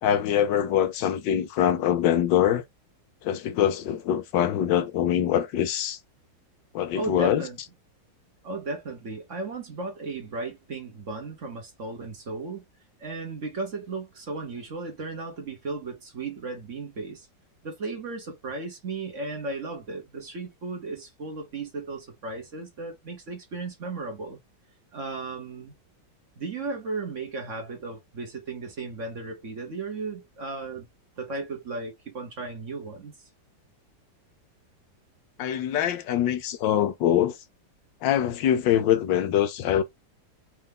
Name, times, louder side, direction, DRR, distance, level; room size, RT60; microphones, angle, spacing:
voice 1, 0.0-2.6 3.2-6.0 6.7-7.4 35.4-37.4 38.0-39.8, left 10 dB, 75° left, 1.3 m, -24 dB
voice 2, 6.9-7.6 8.4-12.7 13.0-17.3 17.6-24.4 24.9-25.7 26.4-30.9 31.2-33.3, right 3 dB, 45° right, 1.2 m, -35 dB
4.4 x 2.7 x 3.5 m
omnidirectional pair, 2.0 m